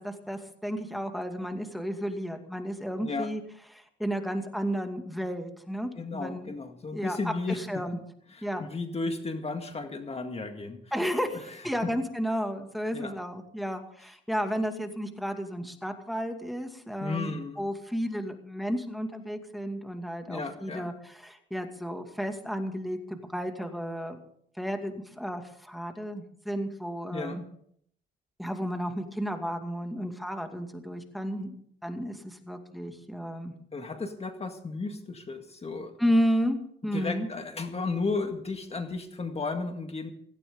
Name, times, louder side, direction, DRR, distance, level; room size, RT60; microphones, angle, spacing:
voice 1, 0.0-3.4 3.7-6.5 6.9-8.0 8.4-8.7 10.9-24.2 24.6-27.4 28.4-31.6 31.8-33.5 36.0-36.6 36.8-37.3, equal, ahead, 5 dB, 2.3 m, -32 dB
voice 2, 6.0-8.0 8.3-10.8 11.5-11.6 12.9-13.1 17.0-17.6 20.3-20.9 27.1-27.4 33.7-35.9 36.9-40.1, left 3 dB, 30° left, 5 dB, 2.0 m, -34 dB
17.0 x 16.5 x 3.9 m, 0.65 s
cardioid pair, 90°, 20 cm